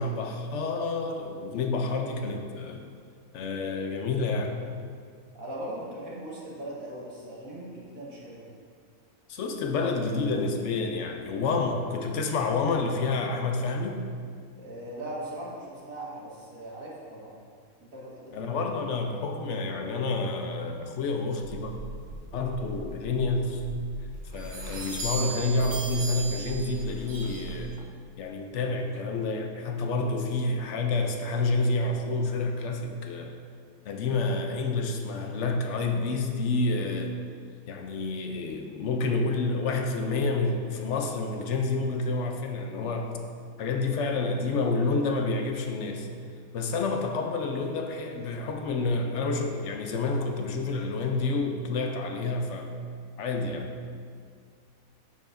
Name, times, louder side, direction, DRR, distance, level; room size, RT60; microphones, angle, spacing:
voice 1, 0.0-2.8 3.3-4.6 9.3-14.0 18.3-21.7 22.3-23.6 24.3-27.7 28.2-33.3 33.9-37.1 37.7-43.1 43.6-46.1 46.5-52.7 53.2-53.7, left 3 dB, 65° left, 4 dB, 0.8 m, -29 dB
voice 2, 5.3-8.5 14.6-17.4 17.8-18.4, right 1 dB, 75° right, -5 dB, 1.9 m, -39 dB
sound 1, 21.4-27.8, right 2 dB, 45° right, 0.7 m, -38 dB
10.5 x 4.8 x 2.6 m, 2.1 s
omnidirectional pair, 1.5 m